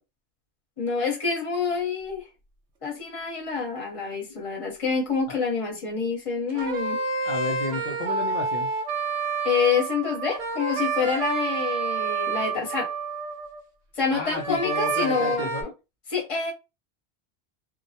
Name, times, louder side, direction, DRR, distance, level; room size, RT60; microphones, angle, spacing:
voice 1, 0.8-2.3 2.8-7.0 9.4-12.9 14.0-15.5 16.1-16.5, left 5 dB, 35° left, 0.9 m, -27 dB
sound 1, 6.5-13.6 14.3-15.6, right 4 dB, 90° right, 0.9 m, -29 dB
voice 2, 7.3-8.7 14.1-15.7, left 5 dB, 60° left, 0.5 m, -32 dB
2.2 x 2.1 x 2.7 m
omnidirectional pair, 1.1 m